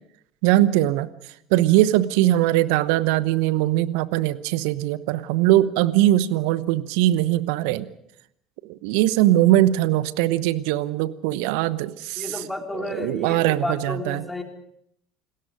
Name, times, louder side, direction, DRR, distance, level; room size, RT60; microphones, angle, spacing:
voice 1, 0.4-1.1 1.5-7.9 8.6-12.4 12.9-14.2, right 14 dB, 65° right, 17 dB, 1.0 m, -21 dB
voice 2, 12.2-14.4, left 2 dB, 5° left, 2 dB, 4.2 m, -31 dB
28.5 x 20.0 x 5.2 m, 0.73 s
figure-of-eight pair, 65°, 0 cm